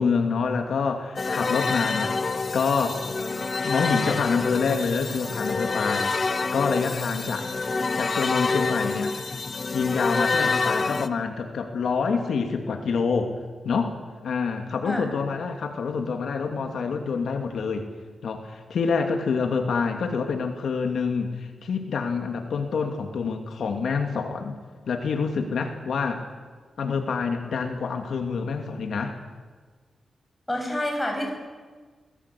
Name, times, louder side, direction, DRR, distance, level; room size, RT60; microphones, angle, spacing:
voice 1, 0.0-2.2 2.5-3.1 3.5-6.1 6.5-7.5 8.0-9.2 9.7-13.3 13.6-14.0 14.2-17.9 18.2-24.6 24.9-26.3 26.8-29.2, left 5 dB, 80° left, 4 dB, 2.6 m, -26 dB
sound 1, 1.2-11.1, left 4 dB, 35° left, 1.1 m, -27 dB
voice 2, 30.5-31.3, left 1 dB, 10° left, 2 dB, 6.5 m, -28 dB
25.5 x 19.5 x 8.5 m, 1.5 s
wide cardioid pair, 130°, 0 cm